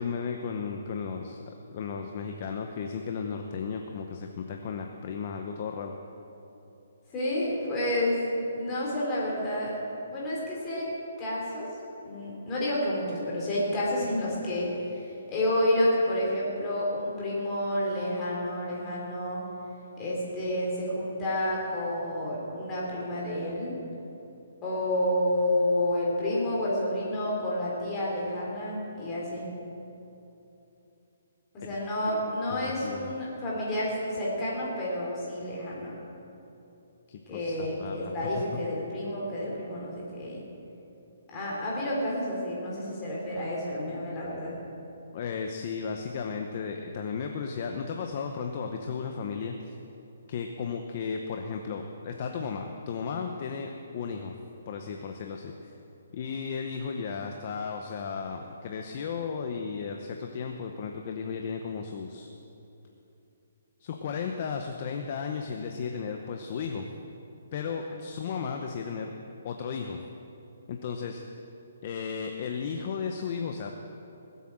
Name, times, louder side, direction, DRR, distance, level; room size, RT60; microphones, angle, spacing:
voice 1, 0.0-1.4 1.7-6.0 32.0-32.2 32.5-33.1 37.1-38.1 45.1-49.7 50.3-54.4 54.7-55.7 56.1-62.3 63.8-66.9 67.5-69.1 69.4-70.0 70.7-71.2 71.8-73.7, left 6 dB, 35° left, 3 dB, 0.8 m, -34 dB
voice 2, 7.1-8.3 8.5-9.7 10.1-10.9 11.2-11.7 12.0-19.4 20.0-23.7 24.6-29.5 31.5-35.9 37.3-40.4 41.3-44.5, left 1 dB, 15° left, -5 dB, 3.5 m, -30 dB
19.0 x 8.3 x 7.5 m, 2.9 s
hypercardioid pair, 170°, 0 cm